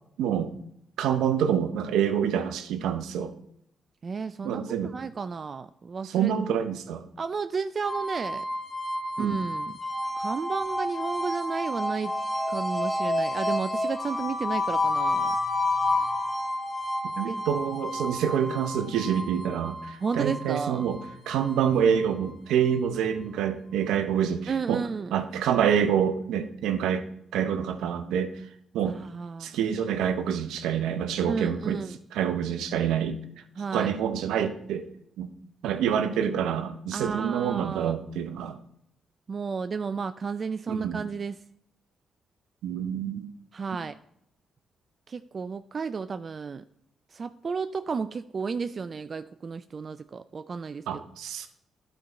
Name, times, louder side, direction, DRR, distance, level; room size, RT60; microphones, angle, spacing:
voice 1, 0.2-0.5 1.0-3.3 4.4-4.9 6.0-7.0 9.2-9.4 17.2-21.0 21.3-24.8 25.1-27.0 27.3-28.3 28.7-29.0 29.4-31.8 32.1-33.2 33.7-34.8 35.2-35.3 35.6-38.6 40.7-41.0 42.6-43.3 50.9-51.5, right 8 dB, 80° right, 10 dB, 0.7 m, -27 dB
voice 2, 4.0-6.3 7.2-8.5 9.2-9.8 10.2-12.1 12.5-15.4 17.3-17.4 20.0-20.9 24.5-25.1 28.9-29.6 31.3-32.0 33.6-34.0 36.9-38.0 39.3-41.4 43.5-44.0 45.1-46.6 47.1-51.0, right 5 dB, 50° right, 11 dB, 0.3 m, -32 dB
sound 1, 7.8-22.8, left 1 dB, 10° left, 1.9 m, -30 dB
12.0 x 4.5 x 4.0 m, 0.75 s
hypercardioid pair, 45°, 0 cm